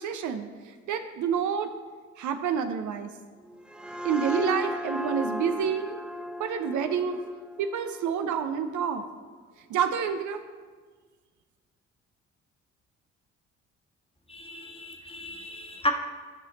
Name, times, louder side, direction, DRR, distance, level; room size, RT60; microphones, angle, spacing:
voice 1, 0.0-1.7 2.2-3.1 4.0-6.0 6.4-7.2 7.6-9.0 9.7-10.4, right 7 dB, 60° right, 7 dB, 0.7 m, -28 dB
sound 1, 3.4-8.9, equal, 5° right, 0.6 m, -36 dB
voice 2, 14.3-15.9, left 1 dB, 15° left, 2 dB, 1.4 m, -33 dB
12.5 x 5.7 x 4.2 m, 1.5 s
hypercardioid pair, 45°, 35 cm